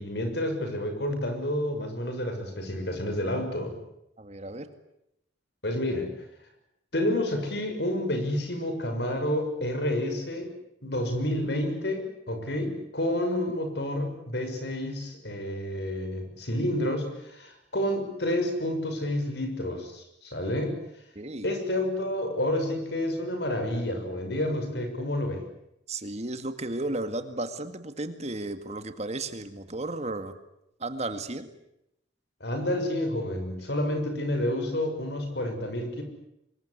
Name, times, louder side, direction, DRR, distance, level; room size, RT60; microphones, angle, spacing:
voice 1, 0.0-3.8 5.6-6.1 6.9-10.5 10.8-20.7 21.4-25.4 32.4-36.0, left 1 dB, 60° left, 6 dB, 6.5 m, -29 dB
voice 2, 4.2-4.7 21.2-21.5 25.9-30.4 30.8-31.5, right 2 dB, 35° right, 9 dB, 2.1 m, -34 dB
25.0 x 22.0 x 9.8 m, 0.81 s
head